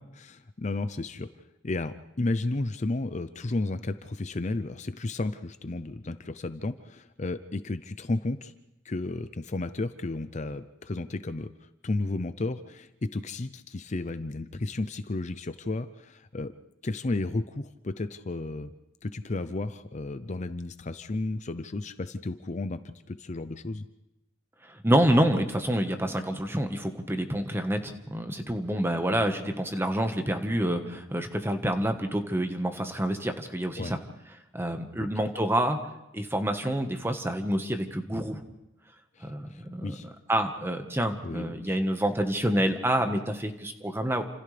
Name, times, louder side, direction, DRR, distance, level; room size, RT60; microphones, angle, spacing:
voice 1, 0.1-1.3 1.6-8.5 8.8-11.5 11.8-16.5 16.8-18.7 19.0-23.9 33.8-33.9 35.0-35.2 39.2-40.1 41.2-41.8, left 2 dB, 40° left, 11 dB, 0.6 m, -33 dB
voice 2, 24.8-34.0 34.5-35.8 36.1-38.4 39.2-39.9 40.3-44.2, right 1 dB, 15° right, 6 dB, 1.4 m, -27 dB
29.0 x 27.0 x 3.4 m, 0.92 s
head